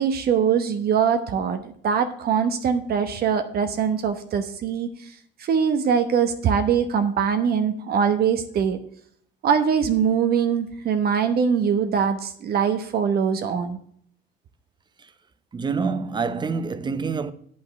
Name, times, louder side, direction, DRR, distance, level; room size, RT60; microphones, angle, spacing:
voice 1, 0.0-5.1 5.4-8.8 9.4-13.8, right 7 dB, 55° right, 1.1 m, -22 dB
voice 2, 15.5-17.3, right 5 dB, 25° right, 0.8 m, -26 dB
8.9 x 5.4 x 7.7 m
cardioid pair, 120°, 19 cm